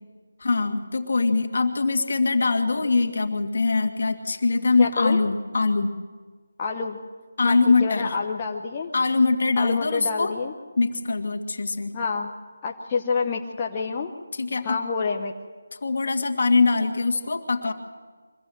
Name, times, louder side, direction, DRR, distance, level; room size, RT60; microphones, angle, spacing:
voice 1, 0.4-5.9 7.4-8.1 8.9-10.3 10.8-12.0 14.4-14.8 15.8-17.7, left 3 dB, 50° left, 4 dB, 2.0 m, -22 dB
voice 2, 4.8-5.2 6.6-7.0 7.4-8.9 9.6-10.5 11.9-12.3 12.6-14.1 14.6-15.3, left 5 dB, 20° left, 0 dB, 0.8 m, -28 dB
23.5 x 15.5 x 7.8 m, 1.5 s
figure-of-eight pair, 170°, 0 cm